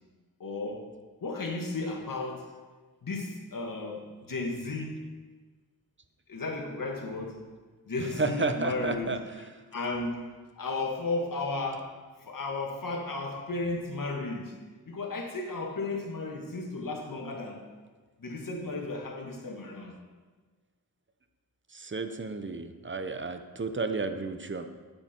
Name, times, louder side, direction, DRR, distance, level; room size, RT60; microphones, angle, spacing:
voice 1, 0.4-0.9 1.2-2.5 3.0-5.0 6.3-7.5 7.9-9.5 9.7-11.9 12.2-14.6 14.9-17.6 18.2-19.9, left 3 dB, 60° left, 1 dB, 1.9 m, -34 dB
voice 2, 8.0-9.2 21.7-24.7, right 3 dB, 30° right, 8 dB, 0.9 m, -32 dB
8.7 x 8.7 x 4.5 m, 1.4 s
cardioid pair, 55°, 38 cm